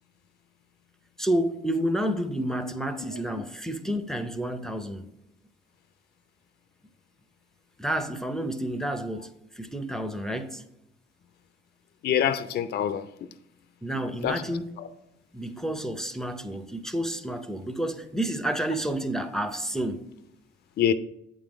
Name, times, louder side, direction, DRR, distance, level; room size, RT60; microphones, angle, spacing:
voice 1, 1.2-5.0 7.8-10.6 13.8-14.6 15.3-20.0, right 1 dB, ahead, 0.6 m, -30 dB
voice 2, 3.1-3.4 12.0-13.1 14.2-14.4 14.8-14.9 20.8-20.9, left 9 dB, 55° left, 0.4 m, -26 dB
8.3 x 3.8 x 4.9 m
cardioid pair, 90°, 20 cm